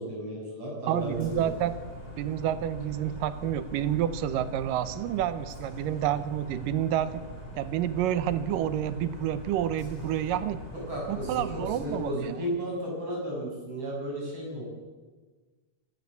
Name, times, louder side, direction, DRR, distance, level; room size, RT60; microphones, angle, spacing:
voice 1, 0.0-1.5 10.9-14.6, right 1 dB, 45° right, -2 dB, 7.8 m, -34 dB
sound 1, 0.9-12.1, equal, 20° left, 3.6 m, -42 dB
voice 2, 0.9-1.7 2.2-7.2 7.6-10.6 11.1-12.4, right 11 dB, 85° right, 13 dB, 2.5 m, -29 dB
25.5 x 12.0 x 8.4 m, 1.4 s
omnidirectional pair, 3.9 m